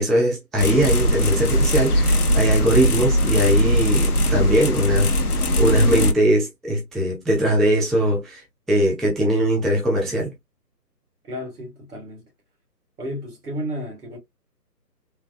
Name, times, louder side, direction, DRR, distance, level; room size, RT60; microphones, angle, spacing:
voice 1, 0.0-10.3, right 1 dB, ahead, 0.4 m, -21 dB
sound 1, 0.6-6.1, equal, 65° left, 0.6 m, -20 dB
voice 2, 11.2-12.3 13.0-14.2, equal, 65° right, 1.9 m, -32 dB
3.3 x 2.1 x 2.4 m
hypercardioid pair, 175°, 50 cm